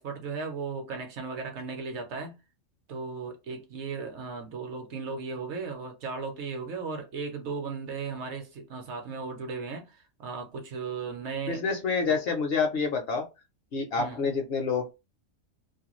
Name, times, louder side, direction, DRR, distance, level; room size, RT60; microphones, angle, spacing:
voice 1, 0.0-2.4 2.9-11.6 12.1-12.2 14.0-14.3, right 4 dB, 65° right, 0.9 m, -36 dB
voice 2, 11.5-13.2 13.7-14.9, left 5 dB, 60° left, 0.7 m, -27 dB
2.4 x 2.2 x 2.9 m
omnidirectional pair, 1.4 m